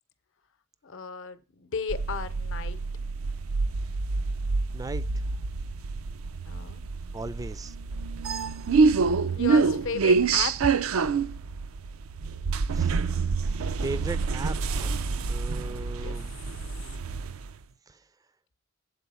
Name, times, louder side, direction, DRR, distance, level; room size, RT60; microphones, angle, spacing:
voice 1, 0.8-2.8 6.5-6.8 8.9-10.8 15.9-16.2, left 5 dB, 65° left, 0.8 m, -35 dB
sound 1, 1.9-17.6, right 4 dB, 85° right, 0.5 m, -27 dB
voice 2, 7.1-7.7 12.7-12.9 13.8-16.3, right 2 dB, 15° right, 0.4 m, -37 dB
8.4 x 4.1 x 6.8 m
head